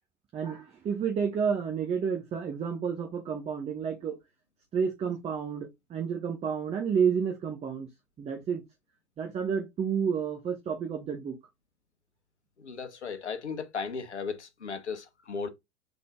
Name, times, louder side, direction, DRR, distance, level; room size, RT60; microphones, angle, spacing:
voice 1, 0.3-4.2 4.7-7.9 8.2-8.6 9.2-11.3, right 7 dB, 20° right, 0.8 m, -30 dB
voice 2, 12.6-15.5, left 5 dB, 80° left, 1.0 m, -36 dB
3.9 x 3.5 x 3.6 m
figure-of-eight pair, 90°, 34 cm